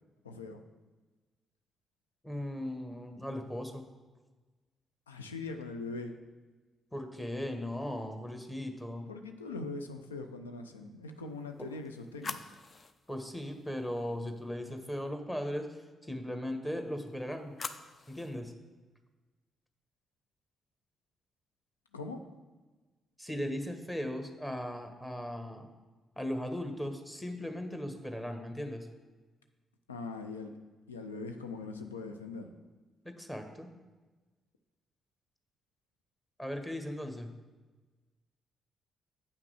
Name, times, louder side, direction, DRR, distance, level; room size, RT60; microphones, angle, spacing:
voice 1, 0.2-0.6 5.1-6.1 9.1-12.4 21.9-22.2 29.9-30.5 30.9-32.5, left 3 dB, 85° left, 6 dB, 0.5 m, -41 dB
voice 2, 2.2-3.8 6.9-9.0 11.6-11.7 13.1-15.7 16.0-17.6 18.1-18.5 23.2-25.7 26.2-28.9 33.2-33.7 36.4-37.3, left 1 dB, 10° left, 5 dB, 1.4 m, -37 dB
sound 1, 11.4-14.5 16.9-18.4, left 4 dB, 40° left, 0.5 m, -46 dB
8.3 x 5.8 x 4.9 m, 1.3 s
figure-of-eight pair, 40°, 0 cm